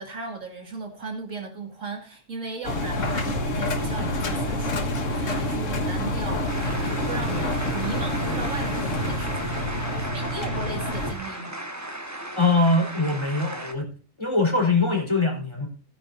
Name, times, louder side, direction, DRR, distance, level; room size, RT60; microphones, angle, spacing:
voice 1, 0.0-11.6, right 3 dB, 70° right, 2.6 m, -37 dB
Engine, 2.6-11.1, left 1 dB, 65° left, 1.8 m, -27 dB
sound 1, 6.5-13.7, right 1 dB, 15° right, 1.4 m, -36 dB
voice 2, 12.4-13.9 14.2-15.7, left 3 dB, 20° left, 3.8 m, -22 dB
16.5 x 10.0 x 2.6 m
omnidirectional pair, 1.4 m